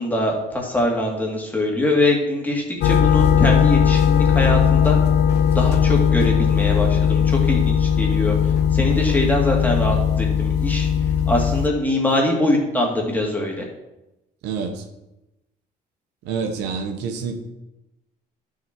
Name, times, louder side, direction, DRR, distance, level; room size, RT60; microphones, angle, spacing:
voice 1, 0.0-5.0 5.5-8.3 8.7-10.9 11.3-13.6, left 1 dB, 10° left, -1 dB, 2.6 m, -23 dB
sound 1, 2.8-11.7, left 8 dB, 80° left, 0.7 m, -18 dB
voice 2, 14.4-14.8 16.2-17.4, right 5 dB, 90° right, 5 dB, 1.3 m, -27 dB
11.5 x 6.6 x 4.6 m, 0.94 s
cardioid pair, 110°, 17 cm